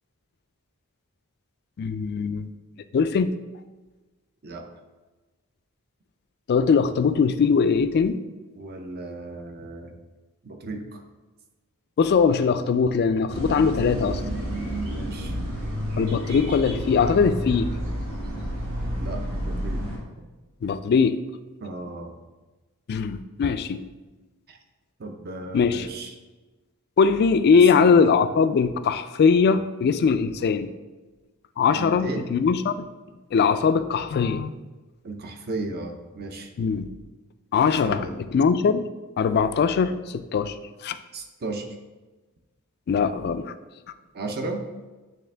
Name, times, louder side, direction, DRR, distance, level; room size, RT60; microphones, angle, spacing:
voice 1, 1.8-2.5 2.9-3.3 6.5-8.2 12.0-14.2 16.0-17.7 20.6-21.2 22.9-23.8 25.5-25.9 27.0-30.7 31.6-32.9 33.3-34.5 36.6-36.9 37.5-38.1 38.3-38.9 39.2-40.6 40.8-41.0 42.9-43.5, left 5 dB, 45° left, 11 dB, 0.3 m, -21 dB
voice 2, 8.6-10.0 10.4-11.0 14.8-15.5 19.0-19.9 20.2-20.3 21.6-22.1 24.5-24.6 25.0-26.1 27.5-28.0 31.7-32.3 35.0-36.5 37.8-38.2 41.1-41.7 44.1-44.7, right 2 dB, 45° right, 4 dB, 0.7 m, -35 dB
sound 1, 13.3-20.0, equal, 65° right, 1.6 m, -30 dB
8.6 x 3.4 x 3.3 m, 1.2 s
head